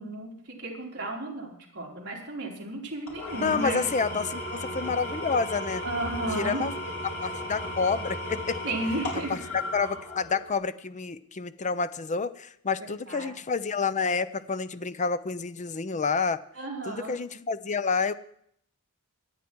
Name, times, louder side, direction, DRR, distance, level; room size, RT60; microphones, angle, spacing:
voice 1, 0.0-3.8 5.8-6.7 8.6-9.3 13.0-13.4 16.6-17.2, right 2 dB, 55° right, -2 dB, 4.4 m, -33 dB
Engine / Tools, 3.1-10.5, left 1 dB, 65° left, 4.4 m, -35 dB
voice 2, 3.4-5.8 6.3-6.7 7.2-8.6 9.3-9.4 9.7-16.4 16.9-18.1, left 5 dB, 35° left, 13 dB, 0.6 m, -29 dB
25.0 x 9.1 x 4.7 m, 0.68 s
head